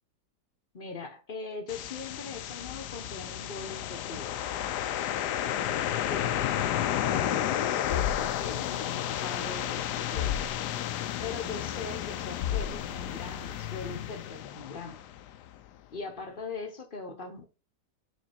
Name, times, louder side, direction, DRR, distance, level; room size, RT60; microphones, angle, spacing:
voice 1, 0.7-4.3 6.1-6.5 7.0-7.6 7.9-10.3 11.2-15.0 15.9-17.5, left 4 dB, 40° left, 0.9 m, -40 dB
sound 1, 1.7-15.6, left 11 dB, 80° left, 1.2 m, -32 dB
sound 2, 7.8-14.5, left 10 dB, 65° left, 0.9 m, -36 dB
6.5 x 3.7 x 4.5 m
omnidirectional pair, 1.8 m